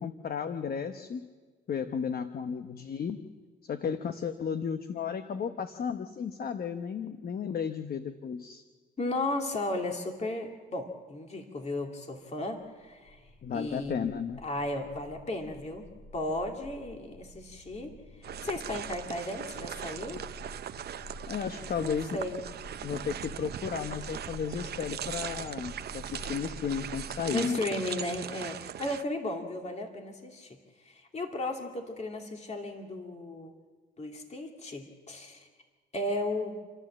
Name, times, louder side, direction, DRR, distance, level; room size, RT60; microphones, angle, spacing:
voice 1, 0.0-1.3 1.7-3.2 3.6-8.6 13.4-14.4 21.3-22.2 22.8-27.6, left 7 dB, 50° left, 8 dB, 0.9 m, -34 dB
voice 2, 9.0-13.2 13.5-15.8 16.1-17.9 18.4-20.2 21.8-22.4 27.3-30.6 30.9-33.5 34.0-35.5 35.9-36.6, left 2 dB, 35° left, 2 dB, 2.5 m, -35 dB
sound 1, 12.8-27.0, left 1 dB, 65° left, 7.7 m, -48 dB
sound 2, 18.2-29.0, right 10 dB, 55° right, 0.6 m, -40 dB
28.5 x 12.0 x 7.5 m, 1.4 s
cardioid pair, 90°, 20 cm